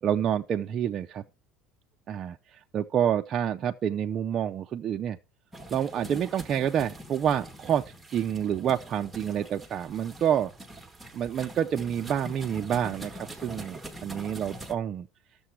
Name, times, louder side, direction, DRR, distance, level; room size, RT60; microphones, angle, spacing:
voice 1, 0.0-1.2 2.1-5.2 5.7-7.8 8.1-10.5 11.1-15.1, right 9 dB, 30° right, 0.4 m, -28 dB
sound 1, 5.5-14.7, right 1 dB, 5° right, 1.2 m, -44 dB
13.0 x 6.8 x 4.5 m
cardioid pair, 170°, 0 cm